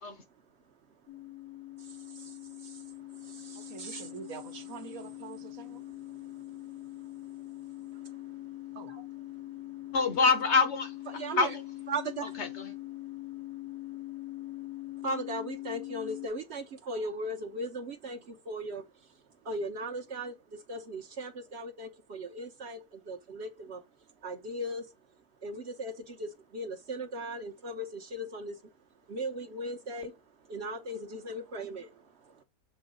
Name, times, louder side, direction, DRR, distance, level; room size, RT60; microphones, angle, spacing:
sound 1, 1.1-16.3, left 17 dB, 75° left, 1.4 m, -43 dB
voice 1, 1.8-2.8 3.2-4.1 6.1-6.6 8.1-8.3 8.9-9.0 11.1-11.5 11.9-12.3 15.0-18.8 19.4-23.8 24.2-24.9 25.4-28.6 29.1-30.2 30.5-32.4, right 1 dB, 50° right, 1.1 m, -38 dB
voice 2, 3.6-5.8 8.7-8.9, right 7 dB, 65° right, 1.3 m, -45 dB
voice 3, 9.9-10.9 11.4-11.6 12.2-12.7, left 4 dB, 50° left, 1.1 m, -26 dB
7.1 x 3.9 x 3.8 m
omnidirectional pair, 1.6 m